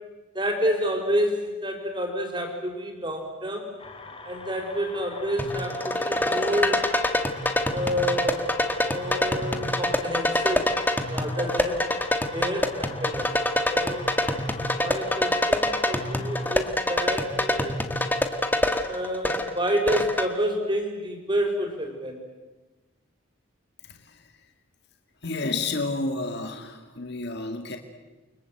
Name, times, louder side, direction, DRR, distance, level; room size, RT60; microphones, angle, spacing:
voice 1, 0.3-3.7 4.2-6.9 7.7-8.5 8.8-10.7 11.1-11.9 12.3-13.3 13.7-14.1 14.8-17.8 18.8-22.2, equal, 20° right, 3 dB, 4.9 m, -29 dB
sound 1, 3.8-16.7, left 3 dB, 25° left, 2.3 m, -43 dB
sound 2, 5.4-20.3, left 1 dB, 10° left, 1.6 m, -26 dB
voice 2, 23.9-24.2 25.2-27.8, left 3 dB, 50° left, 5 dB, 2.0 m, -30 dB
29.5 x 24.5 x 7.9 m, 1.2 s
head